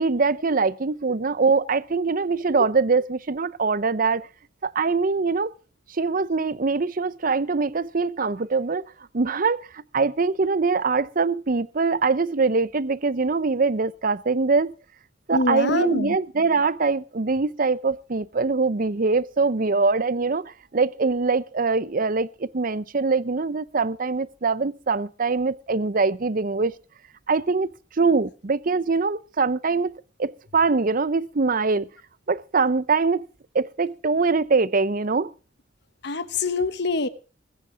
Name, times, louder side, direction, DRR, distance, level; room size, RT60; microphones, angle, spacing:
voice 1, 0.0-4.3 4.6-5.5 5.9-8.8 9.1-14.7 15.3-26.7 27.3-29.9 30.2-31.9 32.3-33.2 33.5-35.3, right 4 dB, 45° right, 0.7 m, -23 dB
voice 2, 15.3-16.2 36.0-37.1, left 3 dB, 65° left, 1.2 m, -25 dB
21.0 x 8.8 x 5.0 m
head